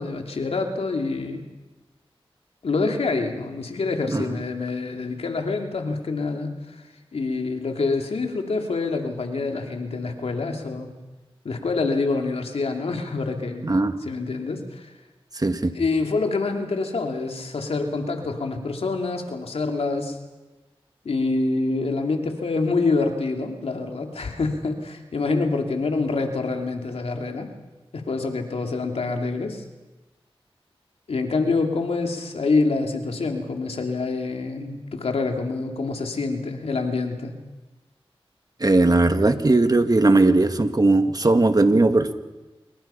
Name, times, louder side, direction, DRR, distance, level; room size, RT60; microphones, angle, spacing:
voice 1, 0.0-1.4 2.6-6.9 7.1-10.9 11.4-13.7 14.0-14.9 15.4-20.2 21.0-27.5 27.9-29.6 31.1-37.3, left 3 dB, 85° left, 3 dB, 2.8 m, -26 dB
voice 2, 13.6-14.0 15.4-15.7 38.6-42.1, right 2 dB, 40° right, 8 dB, 1.9 m, -18 dB
27.0 x 22.5 x 5.7 m, 1.1 s
cardioid pair, 45°, 10 cm